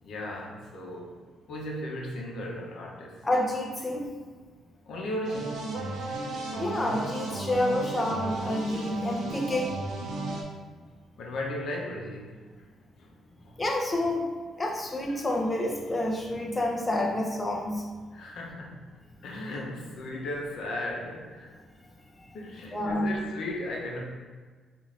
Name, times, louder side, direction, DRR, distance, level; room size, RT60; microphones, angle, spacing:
voice 1, 0.0-1.1 1.5-3.2 4.9-5.8 11.2-12.4 13.0-13.1 13.4-13.6 15.1-15.2 18.1-18.8 19.2-21.5 22.3-24.0, left 1 dB, 70° left, -1 dB, 0.7 m, -36 dB
voice 2, 3.2-4.1 6.6-9.7 13.6-14.3 14.6-17.9 22.7-23.1, left 1 dB, 20° left, 0 dB, 0.4 m, -28 dB
sound 1, 5.2-10.4, right 2 dB, 85° right, 0.6 m, -34 dB
3.7 x 2.5 x 3.1 m, 1.5 s
cardioid pair, 90°, 0 cm